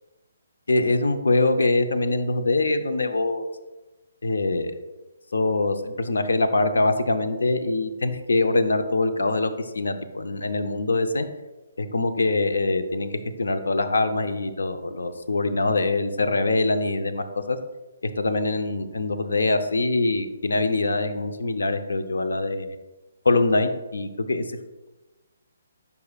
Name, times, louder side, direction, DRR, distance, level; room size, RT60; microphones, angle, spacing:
voice 1, 0.7-3.5 4.2-4.7 5.3-11.3 11.8-17.6 18.2-22.7 23.2-24.6, left 2 dB, 75° left, 8 dB, 0.7 m, -23 dB
9.3 x 5.4 x 2.3 m, 1.1 s
figure-of-eight pair, 145°, 0 cm